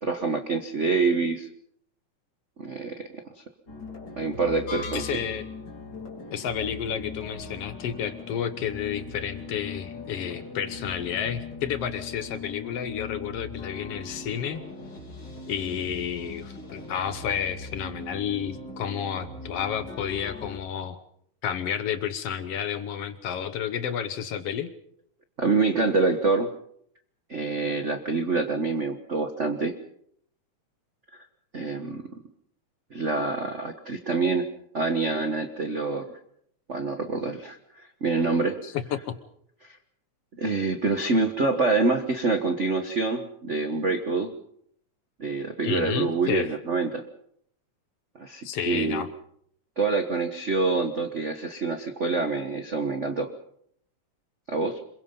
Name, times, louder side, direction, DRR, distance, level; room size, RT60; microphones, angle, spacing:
voice 1, 0.0-1.5 2.6-3.1 4.2-5.2 25.4-26.5 27.3-29.7 31.1-31.2 31.5-32.0 32.9-34.5 34.7-36.1 36.7-38.6 39.6-39.8 40.4-44.3 45.2-47.0 48.1-49.1 49.8-53.3 54.5-54.8, right 3 dB, 50° right, 7 dB, 0.8 m, -26 dB
sound 1, 3.7-20.6, left 3 dB, 35° left, 3.8 m, -40 dB
sound 2, 4.7-5.7, left 4 dB, 80° left, 3.6 m, -38 dB
voice 2, 4.9-5.5 6.3-14.6 15.5-21.0 21.4-24.7 38.6-39.2 45.6-46.5 48.4-49.1, left 8 dB, 65° left, 11 dB, 1.9 m, -31 dB
26.0 x 22.5 x 5.4 m, 0.67 s
omnidirectional pair, 3.3 m